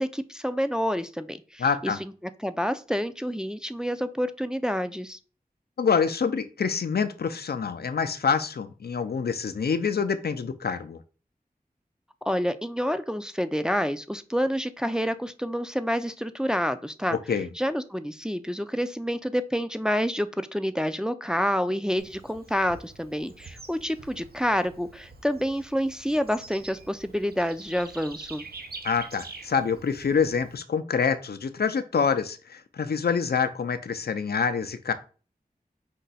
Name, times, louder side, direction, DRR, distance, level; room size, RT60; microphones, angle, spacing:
voice 1, 0.0-2.1 2.4-5.2 12.3-17.2 17.6-28.4, equal, 5° right, 10 dB, 0.4 m, -28 dB
voice 2, 1.6-2.0 5.8-11.0 17.1-17.5 28.8-34.9, left 6 dB, 85° left, 10 dB, 0.4 m, -26 dB
Bird / Insect, 22.0-30.5, right 3 dB, 75° right, 0.6 m, -46 dB
5.1 x 2.2 x 4.0 m, 0.36 s
wide cardioid pair, 40°, 16 cm